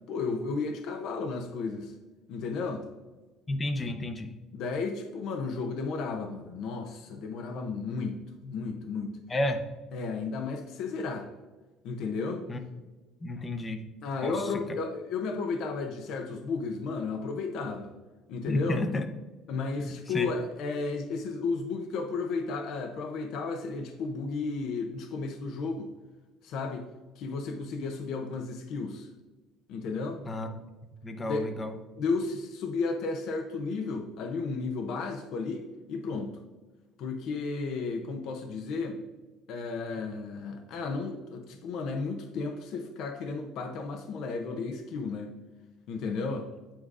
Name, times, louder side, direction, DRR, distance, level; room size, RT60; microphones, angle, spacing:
voice 1, 0.1-1.9 2.3-2.8 4.5-9.2 9.9-11.3 11.8-12.5 14.0-17.9 18.3-18.8 19.5-25.9 26.4-26.9 27.2-29.1 29.7-30.2 31.2-31.5 32.0-36.4 37.0-39.0 39.5-45.3 45.9-46.5, left 4 dB, 60° left, 5 dB, 0.6 m, -33 dB
voice 2, 3.5-4.3 9.3-9.6 12.5-12.6 13.2-13.8 14.2-14.3 18.5-19.1 19.8-20.3 30.2-30.6 31.0-31.7, left 1 dB, 20° left, 7 dB, 0.6 m, -31 dB
8.6 x 4.7 x 2.5 m, 1.2 s
cardioid pair, 155°, 0 cm